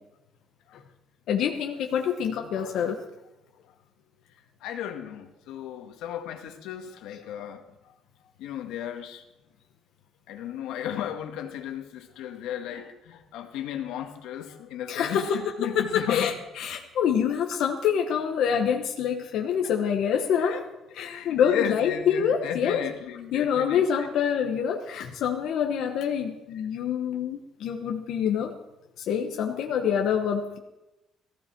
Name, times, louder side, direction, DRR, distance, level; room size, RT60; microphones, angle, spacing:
voice 1, 1.3-3.0 14.9-20.6 20.9-22.8 23.3-28.5 29.0-30.6, left 8 dB, 60° left, 3 dB, 1.2 m, -26 dB
voice 2, 4.6-7.6 8.4-9.2 10.3-16.3 20.4-20.6 21.0-23.9, left 10 dB, 85° left, 5 dB, 1.7 m, -34 dB
18.0 x 15.0 x 4.6 m, 0.96 s
cardioid pair, 160°, 0 cm